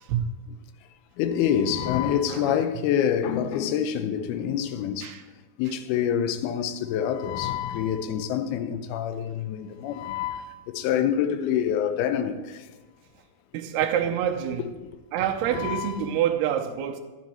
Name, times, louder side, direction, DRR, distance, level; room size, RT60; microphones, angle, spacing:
voice 1, 1.2-5.1 5.6-10.5 10.8-12.6 15.5-16.1, left 9 dB, 80° left, 2.5 m, -26 dB
voice 2, 2.3-2.6 5.0-5.2 13.5-14.6 15.1-17.0, right 10 dB, 85° right, 2.8 m, -26 dB
11.5 x 9.2 x 4.3 m
omnidirectional pair, 4.5 m